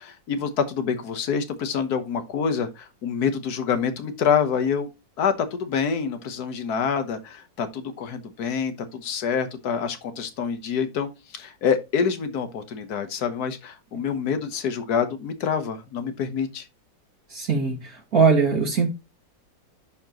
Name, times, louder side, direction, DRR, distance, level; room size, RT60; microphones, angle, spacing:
voice 1, 0.0-4.9 5.2-16.7, left 6 dB, 60° left, 1.7 m, -26 dB
voice 2, 17.3-18.9, right 5 dB, 55° right, 2.3 m, -21 dB
11.5 x 4.4 x 3.0 m
omnidirectional pair, 2.0 m